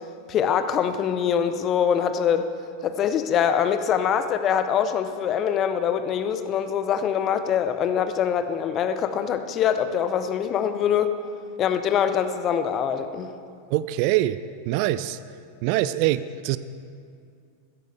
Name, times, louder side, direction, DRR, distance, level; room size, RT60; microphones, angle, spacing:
voice 1, 0.3-2.5 2.8-11.1 11.6-13.3, left 8 dB, 30° left, 10 dB, 0.7 m, -24 dB
voice 2, 13.7-14.4 14.7-15.2 15.6-16.6, right 15 dB, 45° right, 15 dB, 0.3 m, -23 dB
15.5 x 14.0 x 3.4 m, 2.4 s
figure-of-eight pair, 90°, 0 cm